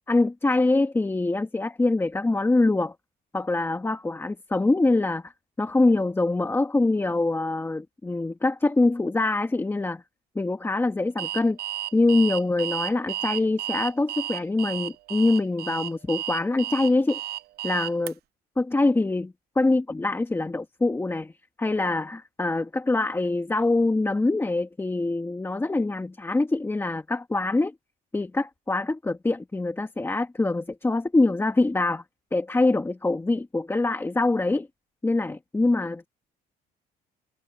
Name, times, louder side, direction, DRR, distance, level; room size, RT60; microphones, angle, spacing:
voice 1, 0.0-2.9 3.3-5.3 5.6-10.0 10.4-11.6 11.9-17.2 17.6-18.1 18.6-21.3 21.6-27.7 28.1-32.0 32.3-34.7 35.0-36.1, left 2 dB, 15° left, 1.9 m, -24 dB
Alarm, 11.2-18.1, right 13 dB, 70° right, 0.8 m, -33 dB
cardioid pair, 110°, 17 cm